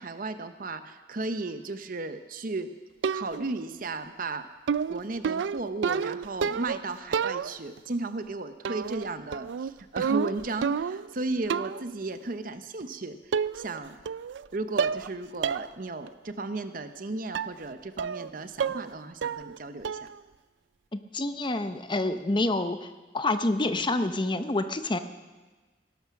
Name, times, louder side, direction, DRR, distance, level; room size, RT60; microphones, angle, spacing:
voice 1, 0.0-2.7 3.1-4.4 4.9-14.0 14.5-20.1, right 3 dB, 50° right, 10 dB, 0.8 m, -35 dB
sound 1, 3.0-3.6 4.7-6.8 7.1-7.8 8.6-9.1 9.3-11.1 11.5-11.9 12.8-12.9 13.3-13.8 14.1-14.5 14.8-15.1 15.4-15.7 16.1-16.2 17.3-17.6 18.0-18.3 18.6-18.9 19.2-19.6 19.8-20.2, right 6 dB, 90° right, 0.4 m, -29 dB
voice 2, 20.9-22.9 23.1-25.0, left 2 dB, 25° left, 10 dB, 0.8 m, -27 dB
19.0 x 12.0 x 5.9 m, 1.3 s
head